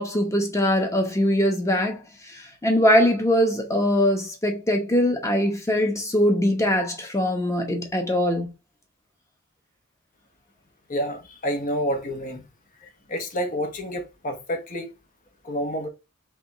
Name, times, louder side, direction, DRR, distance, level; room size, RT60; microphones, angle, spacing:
voice 1, 0.0-2.0 2.6-8.5, equal, 15° left, 1.0 m, -22 dB
voice 2, 10.9-12.4 13.1-14.9 15.4-15.9, equal, 40° left, 1.0 m, -28 dB
3.5 x 3.5 x 4.0 m
head